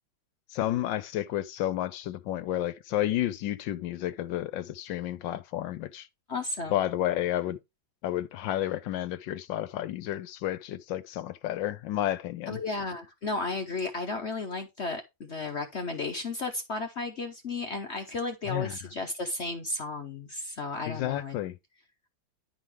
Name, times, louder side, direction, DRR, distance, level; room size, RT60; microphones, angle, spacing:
voice 1, 0.5-6.1 6.7-7.6 8.0-12.6 18.5-18.8 20.8-21.6, left 13 dB, 75° left, 1.3 m, -31 dB
voice 2, 6.3-6.8 12.5-21.4, left 3 dB, 50° left, 0.8 m, -34 dB
10.5 x 3.8 x 4.7 m
omnidirectional pair, 2.1 m